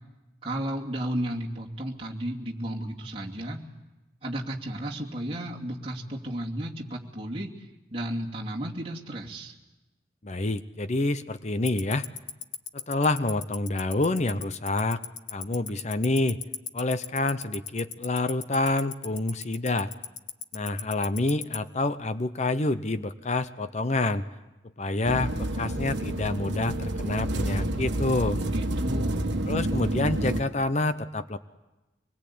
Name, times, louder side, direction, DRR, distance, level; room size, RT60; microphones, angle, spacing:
voice 1, 0.4-3.6 4.2-7.5 7.9-9.5 28.3-29.3, right 1 dB, 30° right, -3 dB, 2.7 m, -33 dB
voice 2, 10.2-12.1 12.7-15.0 15.3-16.4 16.7-19.9 20.5-24.2 24.8-28.4 29.5-31.4, left 2 dB, 35° left, 12 dB, 0.7 m, -27 dB
Tick-tock, 11.7-21.6, left 13 dB, 90° left, 1.1 m, -33 dB
sound 1, 25.1-30.4, right 1 dB, 70° right, 1.4 m, -29 dB
25.0 x 21.0 x 8.6 m, 1.1 s
head